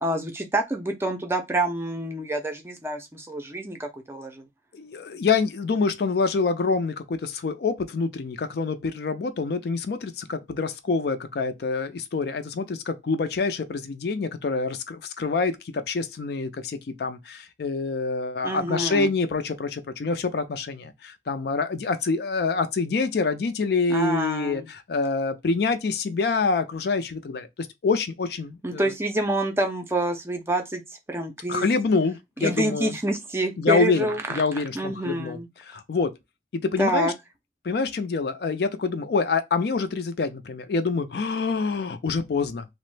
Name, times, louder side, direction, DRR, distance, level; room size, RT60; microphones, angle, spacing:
voice 1, 0.0-4.4 18.4-19.1 23.9-24.7 28.6-30.8 31.1-31.7 32.4-35.5 36.8-37.1, right 1 dB, 15° right, 0.4 m, -27 dB
voice 2, 4.7-27.5 27.8-28.9 31.5-32.9 33.6-35.4 35.7-36.1 36.5-37.1 37.6-42.7, left 4 dB, 60° left, 0.4 m, -26 dB
3.0 x 2.0 x 3.1 m
head